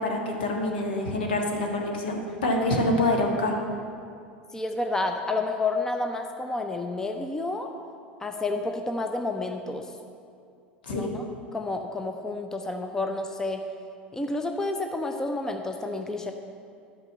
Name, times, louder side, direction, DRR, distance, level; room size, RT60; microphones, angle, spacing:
voice 1, 0.0-3.5 10.9-11.1, left 1 dB, 65° left, 1 dB, 1.5 m, -26 dB
voice 2, 4.5-7.7 8.2-9.9 10.9-11.2 11.5-13.6 14.1-16.3, left 2 dB, 10° left, 5 dB, 0.6 m, -30 dB
12.0 x 5.3 x 6.7 m, 2.4 s
figure-of-eight pair, 80°, 6 cm